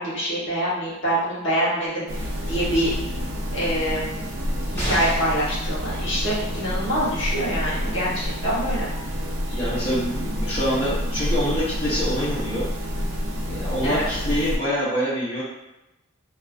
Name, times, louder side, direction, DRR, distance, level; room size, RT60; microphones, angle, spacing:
voice 1, 0.0-2.9 3.5-4.0 4.7-8.9 13.8-14.1, equal, 60° left, -8 dB, 1.1 m, -25 dB
sound 1, 2.1-14.6, equal, 65° right, 0.4 m, -28 dB
sound 2, 4.7-5.5 7.4-7.5 7.8-7.9, equal, 10° left, 0.9 m, -29 dB
voice 2, 9.5-12.7 13.4-15.4, equal, 30° left, -11 dB, 0.6 m, -26 dB
2.5 x 2.4 x 2.3 m, 0.93 s
head